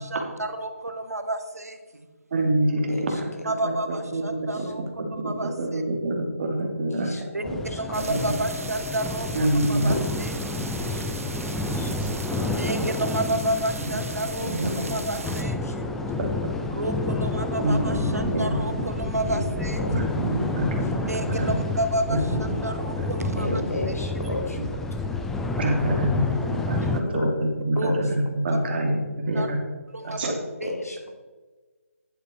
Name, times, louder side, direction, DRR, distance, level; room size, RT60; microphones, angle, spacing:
voice 1, 0.0-2.1 3.4-4.8 5.1-5.8 7.3-7.4 7.8-9.3 9.7-10.7 12.5-14.5 14.9-15.8 16.7-19.8 21.1-23.6 23.9-24.0 27.8-27.9 29.3-29.5 29.9-30.3 30.6-30.7, right 1 dB, 85° right, 7 dB, 1.6 m, -30 dB
voice 2, 2.3-7.1 7.5-7.6 8.1-8.2 9.3-9.9 10.2-10.6 10.9-11.1 12.0-12.9 13.3-13.4 14.5-14.9 16.2-16.3 17.6-19.2 19.9-20.8 21.3-21.5 22.1-22.4 23.0-23.6 25.6-29.6 30.0-30.4, right 1 dB, 45° right, 1 dB, 2.7 m, -27 dB
voice 3, 6.9-8.1 10.9-11.1 11.7-11.9 14.4-14.9 15.2-15.3 15.6-15.8 19.2-19.9 20.2-20.6 23.4-24.6 26.8-27.3 27.8-28.0 30.2-30.4 30.6-31.1, left 1 dB, 85° left, 2 dB, 2.7 m, -34 dB
sound 1, 7.4-27.0, left 2 dB, 5° left, 0.5 m, -29 dB
sound 2, 7.9-15.4, right 3 dB, 65° right, 1.6 m, -38 dB
11.0 x 9.8 x 4.5 m, 1.3 s
figure-of-eight pair, 155°, 8 cm